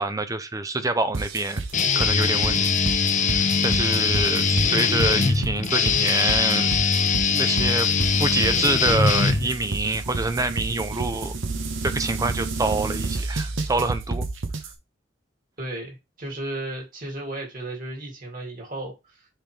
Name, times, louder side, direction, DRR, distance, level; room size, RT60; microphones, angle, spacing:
voice 1, 0.0-1.6 1.9-2.7 3.3-6.7 7.3-7.9 8.2-11.4 11.8-14.3, right 2 dB, 15° right, 0.6 m, -26 dB
sound 1, 1.1-14.7, right 3 dB, 70° right, 1.0 m, -30 dB
Guitar, 1.7-9.8, left 5 dB, 40° left, 0.7 m, -22 dB
voice 2, 15.6-19.3, right 1 dB, 45° right, 2.8 m, -34 dB
7.4 x 3.7 x 3.4 m
head